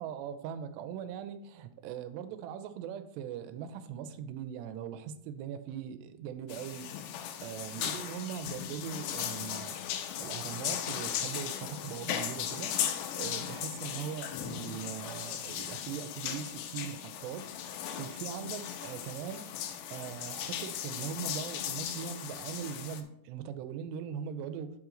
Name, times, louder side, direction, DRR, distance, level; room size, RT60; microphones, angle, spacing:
voice 1, 0.0-9.8 10.2-12.8 13.1-19.5 19.9-24.7, right 8 dB, 80° right, 10 dB, 2.6 m, -40 dB
sound 1, 6.5-23.0, left 10 dB, 80° left, 2.7 m, -37 dB
7.9 x 5.9 x 3.8 m, 0.74 s
omnidirectional pair, 5.1 m